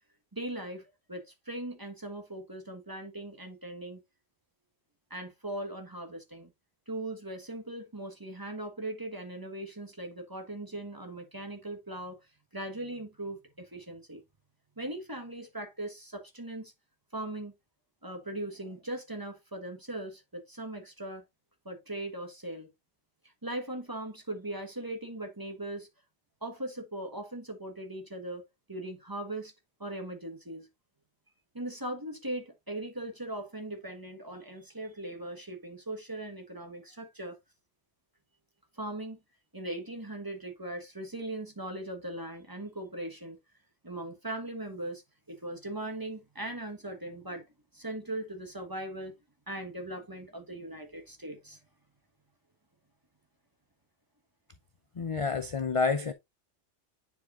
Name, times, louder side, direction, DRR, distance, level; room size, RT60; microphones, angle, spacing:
voice 1, 0.3-4.0 5.1-6.5 6.9-12.2 12.5-14.2 14.8-16.7 17.1-17.5 18.0-21.2 21.6-22.7 23.4-25.9 26.4-28.4 28.7-29.5 29.8-30.7 31.5-37.4 38.7-39.2 39.5-43.4 43.8-45.0 45.3-47.5 47.7-49.2 49.5-51.6, right 1 dB, 20° right, 1.3 m, -39 dB
voice 2, 55.0-56.1, left 4 dB, 40° left, 0.5 m, -29 dB
9.7 x 4.9 x 2.4 m
omnidirectional pair, 1.2 m